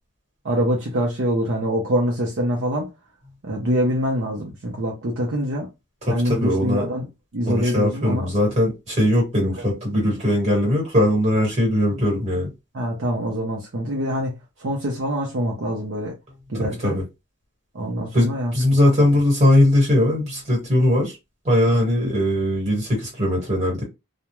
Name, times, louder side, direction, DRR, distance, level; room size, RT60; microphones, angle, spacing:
voice 1, 0.4-2.9 3.4-5.7 6.1-7.1 7.3-8.3 12.7-16.1 16.5-17.0 17.7-18.5, equal, 55° right, 0.5 m, -24 dB
voice 2, 6.0-6.8 7.4-12.5 16.5-17.0 18.1-21.1 21.4-23.8, left 1 dB, 30° right, 1.3 m, -20 dB
2.3 x 2.1 x 2.9 m
head